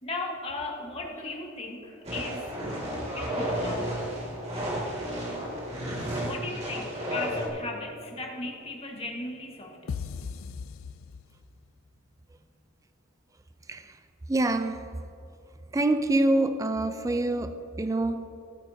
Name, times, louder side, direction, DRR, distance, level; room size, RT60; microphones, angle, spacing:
voice 1, 0.0-2.9 3.1-4.0 6.1-10.1, left 2 dB, 30° left, 1.5 m, -37 dB
sound 1, 2.0-7.5, equal, 30° right, 2.3 m, -32 dB
sound 2, 9.9-11.7, left 6 dB, 90° left, 0.4 m, -37 dB
voice 2, 14.3-15.0 15.7-18.3, right 2 dB, 15° right, 0.4 m, -26 dB
17.0 x 9.1 x 2.8 m
head